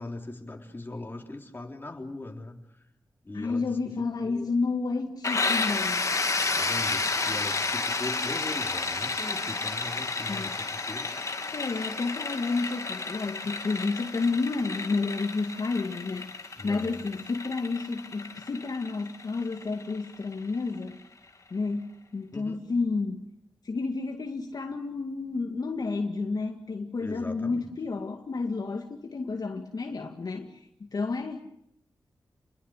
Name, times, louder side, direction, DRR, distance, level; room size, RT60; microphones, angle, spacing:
voice 1, 0.0-2.8 3.2-3.8 4.2-4.5 6.6-11.1 16.6-17.0 22.3-22.6 27.0-27.7, left 2 dB, 25° left, 3.9 m, -40 dB
voice 2, 3.3-6.1 10.3-10.6 11.5-21.0 21.5-23.3 23.6-30.7 30.9-31.5, left 3 dB, 60° left, 2.1 m, -31 dB
sound 1, 5.2-20.8, left 3 dB, 45° left, 2.3 m, -31 dB
29.5 x 22.0 x 6.6 m
wide cardioid pair, 90°, 8 cm